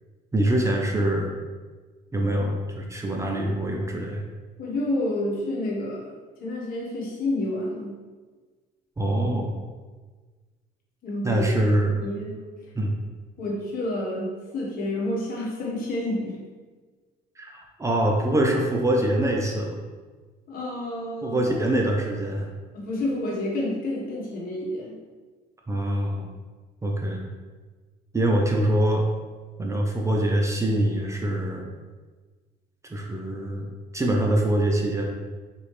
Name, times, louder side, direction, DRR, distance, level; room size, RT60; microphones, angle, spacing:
voice 1, 0.3-1.3 2.1-4.2 9.0-9.5 11.2-11.9 12.7-12.9 17.4-19.8 21.2-22.5 25.7-26.3 26.8-27.2 28.1-29.0 29.6-31.7 32.9-35.0, right 1 dB, 15° right, 0 dB, 0.5 m, -24 dB
voice 2, 4.6-6.0 6.4-7.9 11.0-11.5 12.0-12.3 13.4-16.4 20.5-21.4 22.7-25.0, left 1 dB, 60° left, -4 dB, 1.3 m, -29 dB
4.2 x 3.0 x 3.2 m, 1.4 s
cardioid pair, 110°, 17 cm